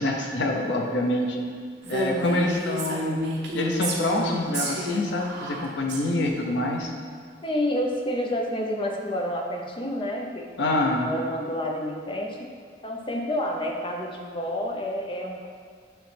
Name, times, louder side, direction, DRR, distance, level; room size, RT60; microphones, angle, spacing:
voice 1, 0.0-1.4 1.9-3.2 3.5-6.9 10.6-11.2, left 1 dB, 80° left, 1 dB, 0.7 m, -26 dB
Female speech woman speaking, 1.8-6.0, equal, 70° right, 0.9 m, -30 dB
voice 2, 2.0-2.5 7.4-12.5 12.8-15.5, equal, 30° left, 1 dB, 0.6 m, -29 dB
8.9 x 3.2 x 3.3 m, 2.1 s
head